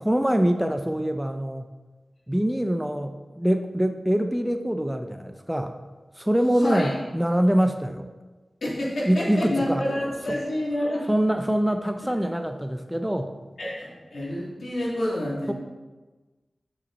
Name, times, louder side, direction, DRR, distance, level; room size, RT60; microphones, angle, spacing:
voice 1, 0.0-1.7 2.3-5.7 6.2-8.1 9.1-9.8 10.3-10.4 11.1-13.4 15.5-15.6, equal, 5° right, 7 dB, 0.4 m, -24 dB
voice 2, 6.6-6.9 8.6-11.1 13.6-15.5, left 1 dB, 75° left, -6 dB, 2.6 m, -28 dB
7.0 x 5.9 x 4.1 m, 1.2 s
wide cardioid pair, 100°, 0 cm